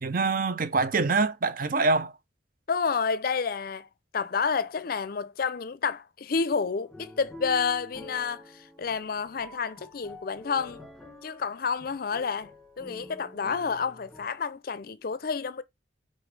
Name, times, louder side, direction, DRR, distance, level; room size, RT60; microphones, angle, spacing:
voice 1, 0.0-2.1, right 3 dB, 50° right, 0.7 m, -25 dB
voice 2, 2.7-3.9 4.1-8.4 8.8-10.8 11.2-12.5 12.8-15.6, left 5 dB, 50° left, 0.5 m, -29 dB
sound 1, 6.7-14.3, left 1 dB, ahead, 1.7 m, -47 dB
5.1 x 4.0 x 5.2 m
head